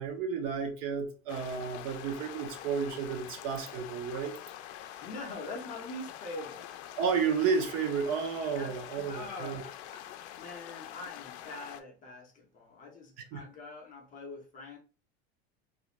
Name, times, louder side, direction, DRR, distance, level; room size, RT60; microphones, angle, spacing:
voice 1, 0.0-4.3 7.0-9.6 13.3-13.4, right 6 dB, 50° right, 0.6 m, -32 dB
sound 1, 1.3-11.8, left 12 dB, 80° left, 0.5 m, -45 dB
voice 2, 5.0-6.7 8.5-8.8 9.1-10.0 10.4-14.8, left 2 dB, 25° left, 0.6 m, -44 dB
2.4 x 2.4 x 2.9 m
supercardioid pair, 150°, 33 cm